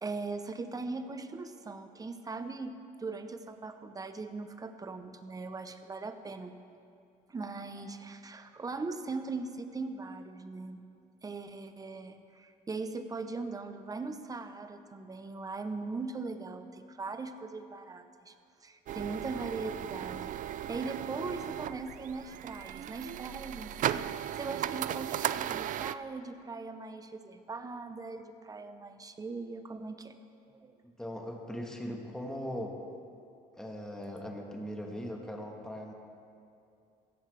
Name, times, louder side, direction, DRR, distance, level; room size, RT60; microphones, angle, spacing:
voice 1, 0.0-6.6 7.3-10.9 11.2-18.3 18.6-24.1 24.4-30.1 30.6-30.7, right 3 dB, 20° right, 9 dB, 0.8 m, -40 dB
sound 1, 18.9-25.9, right 11 dB, 50° right, 0.4 m, -36 dB
voice 2, 30.8-32.8 33.6-35.9, equal, 5° left, 1 dB, 1.4 m, -39 dB
15.5 x 14.0 x 3.4 m, 2.5 s
cardioid pair, 110°, 17 cm